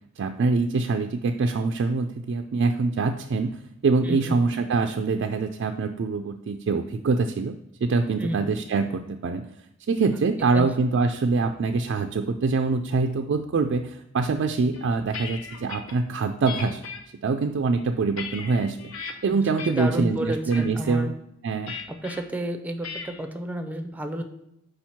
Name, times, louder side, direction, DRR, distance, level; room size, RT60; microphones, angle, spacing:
voice 1, 0.2-9.5 9.9-16.8 17.2-18.8 19.2-21.1 21.4-21.8, right 4 dB, 60° right, 5 dB, 0.4 m, -24 dB
voice 2, 4.0-4.4 8.2-8.4 10.0-10.7 19.3-21.1 22.0-24.2, right 1 dB, 10° right, 7 dB, 0.5 m, -31 dB
sound 1, 14.7-15.9 16.5-17.0 17.6-19.1 19.6-20.0 20.3-20.7 21.7-22.2 22.8-23.2, left 5 dB, 70° left, 0.8 m, -37 dB
5.0 x 4.5 x 5.7 m, 0.82 s
head